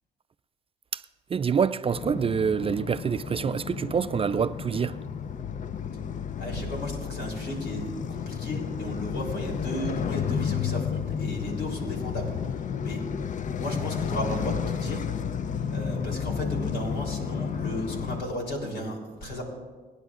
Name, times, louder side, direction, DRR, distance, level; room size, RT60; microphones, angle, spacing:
voice 1, 1.3-5.0, right 6 dB, 30° right, 0.4 m, -26 dB
sound 1, 1.9-18.2, left 7 dB, 45° left, 0.5 m, -32 dB
voice 2, 6.4-12.3 12.8-13.0 13.6-15.0 15.7-19.4, equal, 75° left, 3.4 m, -34 dB
26.0 x 9.7 x 2.4 m
supercardioid pair, 60°, 18 cm